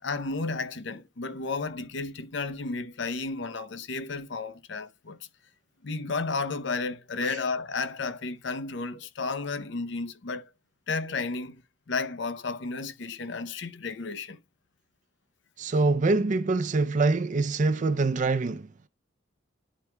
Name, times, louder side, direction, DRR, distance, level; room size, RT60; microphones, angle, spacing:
voice 1, 0.0-5.2 5.8-10.5 10.9-11.6 11.9-14.4, left 4 dB, 65° left, 0.7 m, -32 dB
voice 2, 15.6-18.7, right 3 dB, 40° right, 0.4 m, -25 dB
11.0 x 4.5 x 2.2 m
head